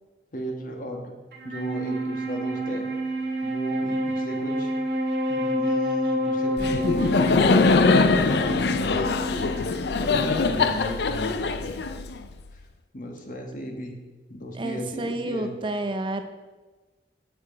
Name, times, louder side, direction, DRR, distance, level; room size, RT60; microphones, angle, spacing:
voice 1, 0.3-1.1 1.4-2.9 3.4-4.7 5.3-8.5 8.8-9.3 10.0-12.0 12.5-12.6 12.9-14.0 14.3-15.5, equal, 50° left, 2 dB, 1.3 m, -35 dB
Wind instrument woodwind instrument, 1.3-10.8, equal, 60° right, 1.3 m, -29 dB
Laughter, 6.6-12.4, left 4 dB, 65° left, 0.5 m, -22 dB
voice 2, 10.5-10.8 14.6-16.2, right 2 dB, 30° right, 8 dB, 0.5 m, -30 dB
8.5 x 6.3 x 5.1 m, 1.3 s
head